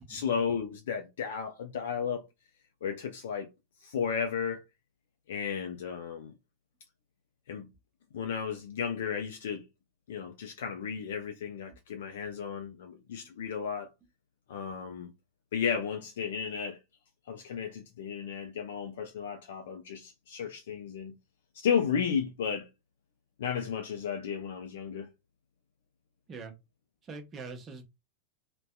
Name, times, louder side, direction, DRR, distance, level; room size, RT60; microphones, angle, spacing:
voice 1, 0.1-2.2 2.8-3.5 3.8-4.6 5.3-6.3 7.5-7.7 8.1-9.6 10.1-13.9 14.5-15.1 15.5-16.8 17.3-21.1 21.5-22.7 23.4-25.1, left 7 dB, 60° left, 0.4 m, -33 dB
voice 2, 27.0-27.8, right 4 dB, 25° right, 0.7 m, -43 dB
2.6 x 2.1 x 2.2 m
figure-of-eight pair, 90°, 0 cm